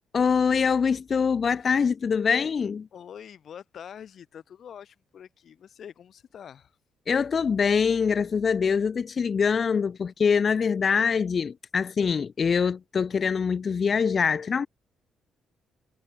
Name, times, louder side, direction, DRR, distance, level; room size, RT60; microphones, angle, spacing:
voice 1, 0.1-2.9 7.1-14.7, left 6 dB, 45° left, 0.8 m, -24 dB
voice 2, 2.9-6.8, left 8 dB, 60° left, 6.5 m, -45 dB
cardioid pair, 90°, 0 cm